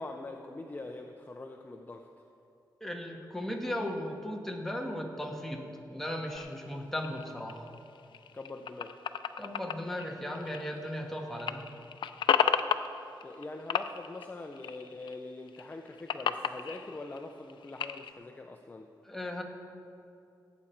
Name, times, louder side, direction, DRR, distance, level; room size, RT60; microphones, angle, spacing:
voice 1, 0.0-2.1 8.3-9.0 13.2-18.9, left 2 dB, 25° left, 4 dB, 0.6 m, -43 dB
voice 2, 2.8-7.7 9.4-11.7 19.0-19.4, left 1 dB, 5° left, 1 dB, 1.3 m, -36 dB
sound 1, 6.3-11.1 11.3-13.4 13.7-15.2 15.5-18.1, left 8 dB, 85° left, 0.4 m, -33 dB
16.5 x 8.5 x 4.5 m, 2.6 s
wide cardioid pair, 125°, 8 cm